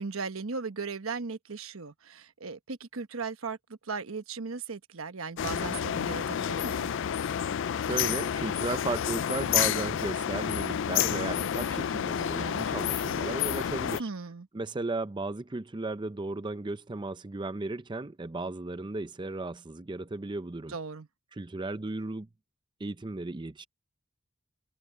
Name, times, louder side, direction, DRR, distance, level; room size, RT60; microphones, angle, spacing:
voice 1, 0.0-3.6 3.9-6.9 14.0-14.5 20.7-21.1, right 4 dB, 85° right, 1.1 m, -37 dB
sound 1, 5.4-14.0, left 9 dB, 65° left, 0.4 m, -30 dB
voice 2, 7.9-14.1 14.5-20.7 21.3-22.3 22.8-23.6, right 2 dB, 20° right, 0.5 m, -35 dB
head